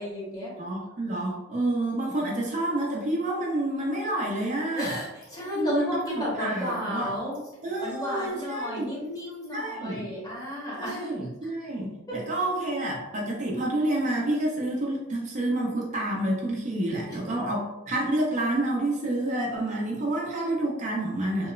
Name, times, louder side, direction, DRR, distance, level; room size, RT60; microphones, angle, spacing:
voice 1, 0.0-0.5 4.8-7.3 7.8-11.1 12.1-12.2 17.1-17.2, left 1 dB, 20° left, -5 dB, 0.8 m, -33 dB
voice 2, 0.6-5.0 5.5-7.1 7.6-8.9 9.5-10.1 10.8-21.5, right 1 dB, 35° right, -2 dB, 0.4 m, -29 dB
2.9 x 2.0 x 2.3 m, 0.98 s
head